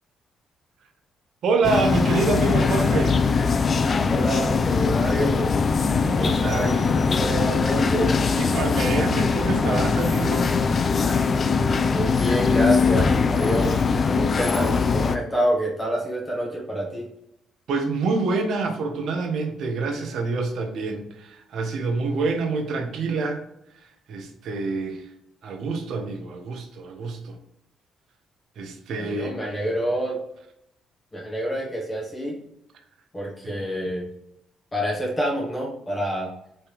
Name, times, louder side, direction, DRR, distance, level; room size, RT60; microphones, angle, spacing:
voice 1, 1.4-3.2 6.0-6.9 8.4-10.6 17.7-23.4 23.7-25.1 25.4-27.4 28.6-29.6 33.4-33.5, right 3 dB, 70° right, 4 dB, 0.7 m, -27 dB
sound 1, 1.6-15.2, left 5 dB, 40° left, 0.3 m, -21 dB
voice 2, 4.1-5.5 6.0-8.2 11.9-17.1 29.0-30.2 31.1-32.4 33.1-34.1 34.7-36.3, right 1 dB, 20° left, -3 dB, 1.2 m, -27 dB
3.5 x 3.2 x 2.9 m, 0.77 s
cardioid pair, 90°, 0 cm